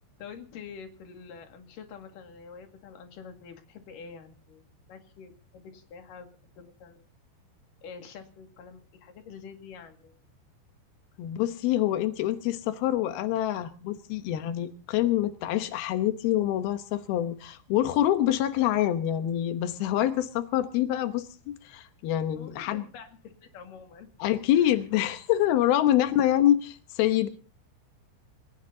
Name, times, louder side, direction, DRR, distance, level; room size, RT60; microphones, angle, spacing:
voice 1, 0.2-6.3 6.6-7.1 7.8-10.2 22.4-24.1 24.5-24.8, left 6 dB, 55° left, 5 dB, 3.0 m, -46 dB
voice 2, 11.2-22.8 24.2-27.3, left 12 dB, 85° left, 9 dB, 2.2 m, -26 dB
29.0 x 16.0 x 2.8 m, 0.38 s
omnidirectional pair, 5.9 m